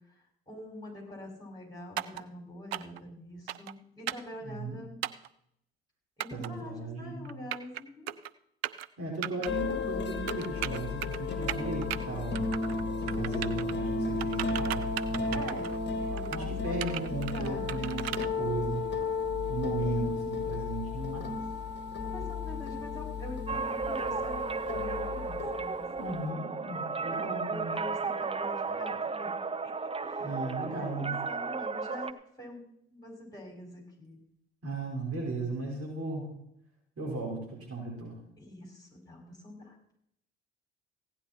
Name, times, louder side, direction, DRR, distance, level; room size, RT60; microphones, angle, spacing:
voice 1, 0.5-5.0 6.2-8.1 15.3-18.6 22.0-26.5 27.1-34.2 38.4-39.8, left 1 dB, 15° left, -1 dB, 6.1 m, -45 dB
sound 1, 2.0-2.2 2.7-3.0 3.5-3.7 4.1-4.3 5.0-5.3 6.2-6.5 7.3-7.8 8.1-8.3 8.6-8.9 9.2-9.5 10.3-11.2 11.5-12.0 12.3-12.8 13.1-13.7 14.2-15.8 16.2-16.4 16.8-18.3, right 13 dB, 85° right, 0.5 m, -36 dB
voice 2, 4.4-4.8 6.3-7.3 9.0-12.4 13.0-15.6 16.3-18.8 19.5-21.3 26.0-27.7 30.2-31.2 34.6-36.3 37.0-38.1, right 3 dB, 50° right, -1 dB, 5.4 m, -36 dB
sound 2, 9.5-26.3, left 4 dB, 35° left, 1.8 m, -34 dB
sound 3, 23.5-32.1, right 4 dB, 20° right, 0.8 m, -34 dB
16.0 x 10.0 x 4.5 m, 0.74 s
hypercardioid pair, 55°, 30 cm